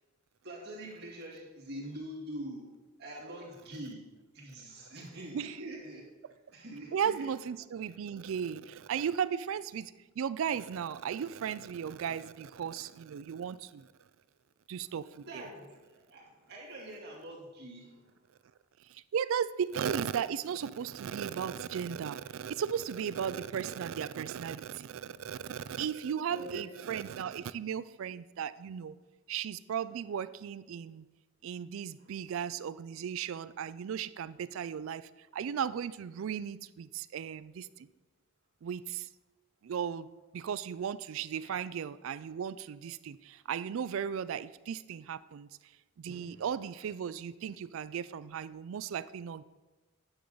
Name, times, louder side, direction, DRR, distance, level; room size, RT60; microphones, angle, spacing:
voice 1, 0.4-2.7 3.0-4.1 4.3-6.0 6.5-7.2 15.3-18.0 26.3-26.7 32.0-32.1 41.4-41.5 46.0-46.5, right 1 dB, 50° right, -5 dB, 2.5 m, -44 dB
voice 2, 6.9-13.9 14.7-15.4 18.9-29.0 29.3-31.1 31.4-37.9 38.6-39.1 39.6-45.5 46.0-49.4, right 8 dB, 70° right, 16 dB, 0.3 m, -36 dB
10.0 x 6.6 x 3.9 m, 1.2 s
head